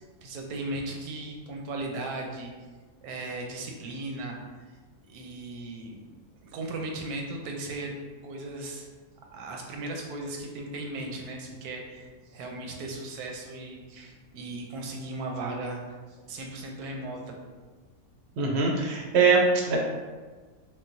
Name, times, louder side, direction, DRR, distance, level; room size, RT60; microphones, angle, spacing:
voice 1, 0.0-2.5 3.0-4.4 5.1-6.0 6.4-7.9 8.2-8.9 9.3-15.8 16.1-17.4, right 2 dB, 85° right, 1 dB, 1.1 m, -37 dB
voice 2, 18.4-19.8, right 4 dB, 65° right, -1 dB, 0.7 m, -22 dB
3.8 x 2.2 x 2.5 m, 1.4 s
omnidirectional pair, 1.6 m